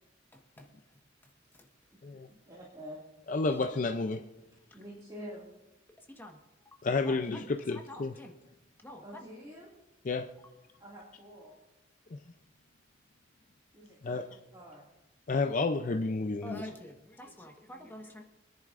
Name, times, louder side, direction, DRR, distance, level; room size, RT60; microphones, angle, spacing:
voice 1, 0.3-0.7 6.2-6.4 7.0-8.3 8.8-9.3 16.4-18.2, left 1 dB, 10° left, 2 dB, 1.3 m, -47 dB
voice 2, 2.5-3.0 4.7-5.5 9.0-9.7 10.8-11.5 13.7-14.8, equal, 20° right, -4 dB, 2.2 m, -47 dB
voice 3, 3.3-4.2 6.8-8.1 10.0-10.3 12.1-12.2 14.0-14.3 15.3-16.6, left 3 dB, 40° left, 5 dB, 0.5 m, -30 dB
28.0 x 10.5 x 2.5 m, 1.0 s
head